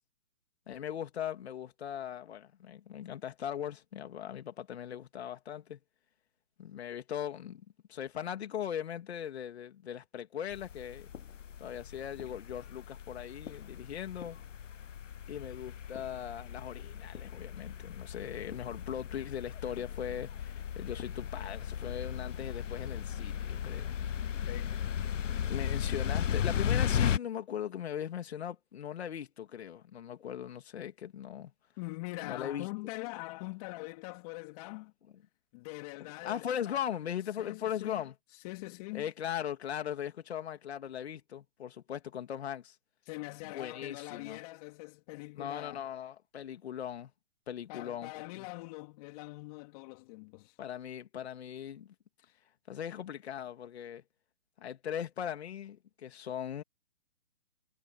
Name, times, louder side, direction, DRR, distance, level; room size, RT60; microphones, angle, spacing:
voice 1, 0.7-5.8 6.6-7.6 7.9-11.1 11.6-14.4 15.3-24.5 25.5-31.5 32.2-32.7 36.2-38.1 38.9-42.8 43.4-44.4 45.4-47.1 47.5-48.5 50.6-51.9 52.7-54.0 54.6-56.6, left 9 dB, 55° left, 2.8 m, -39 dB
sound 1, 10.5-27.2, left 8 dB, 70° left, 0.9 m, -36 dB
voice 2, 31.8-34.9 35.5-36.9 37.4-38.0 38.4-39.1 43.0-45.8 47.7-50.6 52.2-52.3, left 23 dB, 30° left, 3.2 m, -43 dB
hypercardioid pair, 145°, 39 cm